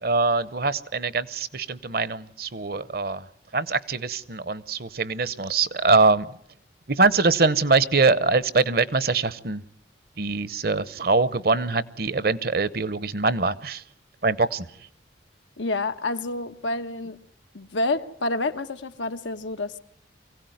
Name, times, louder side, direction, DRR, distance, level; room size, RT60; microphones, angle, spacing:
voice 1, 0.0-3.2 3.5-6.3 6.9-9.6 10.2-13.8 14.2-14.7, right 3 dB, 55° right, 17 dB, 0.9 m, -23 dB
voice 2, 15.6-17.2 17.5-19.8, left 2 dB, 90° left, 8 dB, 1.2 m, -28 dB
24.0 x 16.5 x 9.3 m, 0.68 s
head